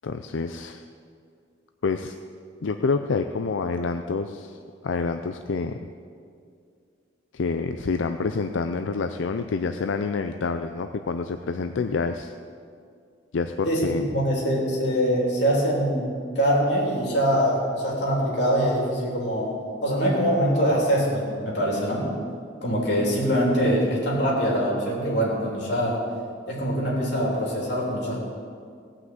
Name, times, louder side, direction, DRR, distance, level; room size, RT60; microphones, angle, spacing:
voice 1, 0.0-0.8 1.8-2.2 2.6-4.6 4.8-5.8 7.3-12.3 13.3-14.1, left 4 dB, 90° left, 7 dB, 0.5 m, -27 dB
voice 2, 13.7-22.1 22.6-26.0 26.5-28.2, equal, 65° left, -3 dB, 3.5 m, -23 dB
17.5 x 5.9 x 7.9 m, 2.3 s
head